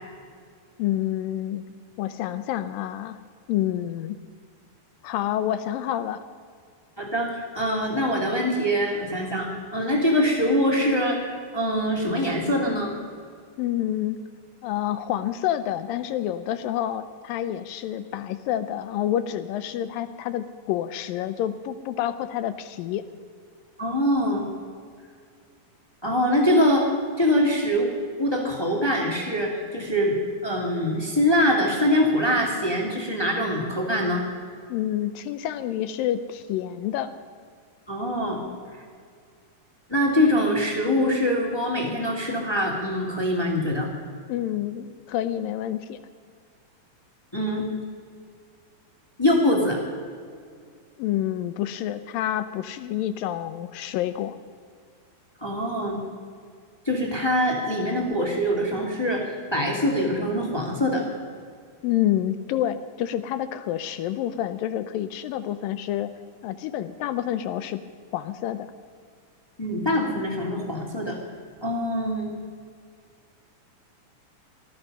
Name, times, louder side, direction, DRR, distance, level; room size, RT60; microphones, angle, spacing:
voice 1, 0.8-1.6 2.0-3.2 3.5-4.2 5.0-6.2 13.6-14.2 14.6-23.0 34.7-37.1 44.3-46.0 51.0-54.4 61.8-66.1 66.4-67.8 68.1-68.7, left 12 dB, 80° left, 12 dB, 2.2 m, -28 dB
voice 2, 7.0-11.2 11.5-12.9 23.8-24.5 26.0-26.9 27.2-27.9 28.2-30.2 30.4-34.2 37.9-38.4 39.9-43.9 47.3-47.7 49.2-49.8 55.4-56.0 56.8-61.1 69.6-71.2 71.6-72.3, equal, 10° left, 0 dB, 1.3 m, -23 dB
19.0 x 13.5 x 5.4 m, 2.1 s
omnidirectional pair, 4.3 m